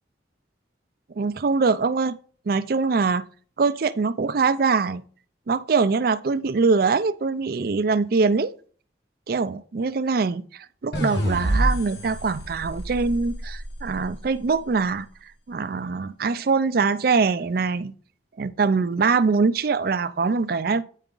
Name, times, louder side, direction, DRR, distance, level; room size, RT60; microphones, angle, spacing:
voice 1, 1.2-2.1 2.5-3.2 3.6-5.0 5.5-8.5 9.3-15.1 15.5-17.9 18.4-20.8, right 4 dB, 50° right, 0.4 m, -23 dB
sound 1, 10.9-14.2, right 1 dB, 65° left, 1.4 m, -27 dB
9.1 x 4.8 x 3.8 m
head